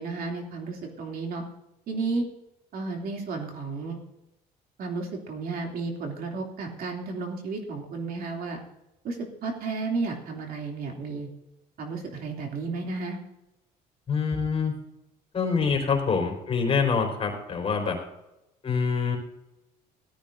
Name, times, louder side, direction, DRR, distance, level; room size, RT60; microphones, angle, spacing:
voice 1, 0.0-1.4 1.9-2.3 2.7-4.0 4.8-8.6 9.0-11.3 11.8-13.2, right 3 dB, 60° right, 1 dB, 2.8 m, -32 dB
voice 2, 14.1-14.7 15.3-18.0 18.6-19.2, left 5 dB, 35° left, 1 dB, 4.0 m, -25 dB
17.5 x 13.0 x 2.6 m, 0.91 s
cardioid pair, 110°, 17 cm